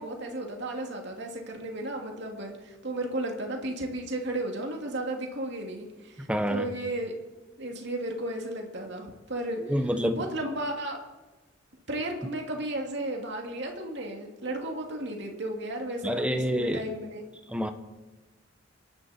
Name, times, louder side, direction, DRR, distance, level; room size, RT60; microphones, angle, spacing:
voice 1, 0.0-7.1 7.6-9.8 10.1-11.0 11.9-17.2, right 1 dB, 60° right, 1 dB, 2.8 m, -34 dB
voice 2, 6.3-6.7 9.6-10.2 16.0-16.8 17.5-17.7, equal, 5° right, 6 dB, 1.1 m, -27 dB
26.0 x 11.5 x 4.5 m, 1.2 s
head